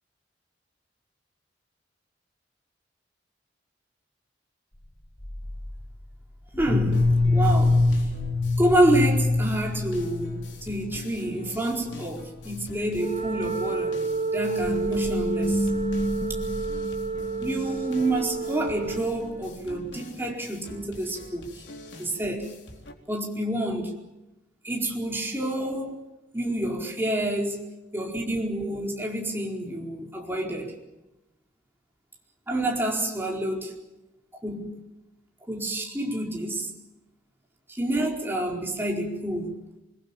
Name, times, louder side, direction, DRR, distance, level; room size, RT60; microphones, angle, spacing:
sound 1, 5.2-5.7 6.6-11.1 11.4-11.6 11.8-12.1 12.4-12.7 13.4-13.5 14.5-17.6, left 2 dB, 25° left, 1.4 m, -25 dB
voice 1, 6.6-8.0 8.6-14.0 14.3-15.7 17.4-21.4 22.0-22.5 23.1-23.9 24.6-26.0 26.3-27.6 27.9-30.7 32.5-33.7 34.4-34.7 35.5-36.7 37.7-39.5, right 1 dB, 10° right, 0 dB, 4.6 m, -28 dB
sound 2, 6.9-22.9, left 1 dB, 85° left, 3.9 m, -46 dB
Wind instrument woodwind instrument, 12.9-19.2, right 4 dB, 35° right, 1.8 m, -30 dB
27.5 x 22.0 x 7.2 m, 0.98 s
head